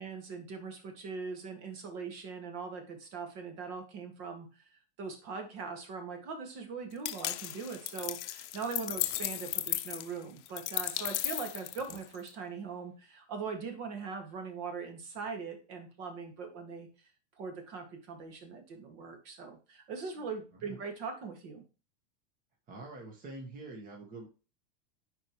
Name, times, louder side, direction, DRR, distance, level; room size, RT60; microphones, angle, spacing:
voice 1, 0.0-4.5 5.0-16.9 17.4-21.6, right 5 dB, 45° right, 5 dB, 1.9 m, -41 dB
sound 1, 7.0-12.3, left 14 dB, 70° left, 0.7 m, -35 dB
voice 2, 22.7-24.3, right 2 dB, 25° right, 1 dB, 1.4 m, -45 dB
8.9 x 4.7 x 3.0 m, 0.35 s
supercardioid pair, 130°, 36 cm